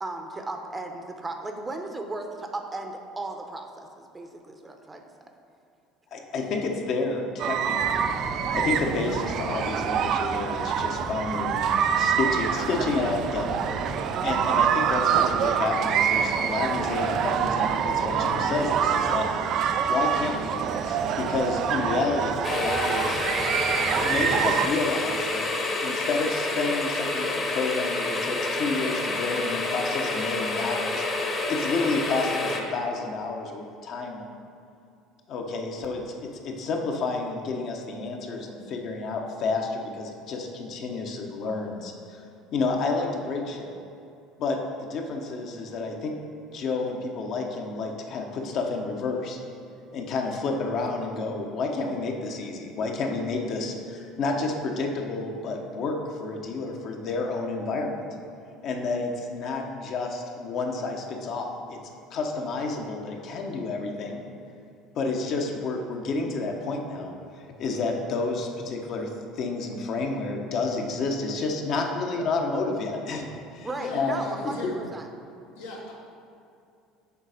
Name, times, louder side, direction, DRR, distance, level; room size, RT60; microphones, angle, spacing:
voice 1, 0.0-5.0 73.6-75.1, right 2 dB, 20° right, 4 dB, 0.8 m, -36 dB
voice 2, 6.1-8.1 8.5-11.7 12.0-13.6 14.2-19.3 19.9-23.2 23.8-25.5 25.8-31.0 31.5-34.3 35.3-42.2 42.5-43.7 44.4-46.1 46.5-49.4 49.9-58.0 58.6-61.8 62.1-64.2 64.9-73.2 73.5-74.2, left 3 dB, 55° left, 2 dB, 1.0 m, -30 dB
sound 1, 7.4-24.7, right 8 dB, 55° right, 0.3 m, -26 dB
sound 2, 7.8-24.5, left 1 dB, 15° left, 0.6 m, -39 dB
sound 3, 22.4-32.6, left 2 dB, 35° left, 1.1 m, -28 dB
voice 3, 73.8-74.7 75.5-75.9, left 2 dB, 80° left, -3 dB, 1.3 m, -38 dB
7.1 x 4.0 x 5.0 m, 2.6 s
hypercardioid pair, 70°, 0 cm